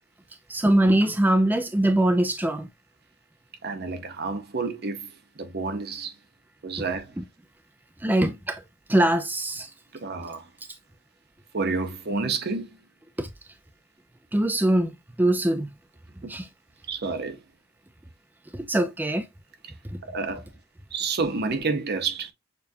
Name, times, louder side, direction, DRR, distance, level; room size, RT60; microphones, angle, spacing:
voice 1, 0.5-2.7 6.8-6.9 7.2-7.3 8.0-8.6 8.9-9.7 13.2-13.3 14.3-14.9 15.2-15.7 16.3-16.5 18.5-19.2, right 1 dB, 10° right, 0.4 m, -22 dB
voice 2, 3.6-5.1 5.4-6.1 6.6-7.1 9.9-10.5 11.5-12.8 16.2-16.3 16.9-17.4 20.0-20.5 20.9-22.3, right 4 dB, 55° right, 0.8 m, -29 dB
6.8 x 2.5 x 2.6 m
head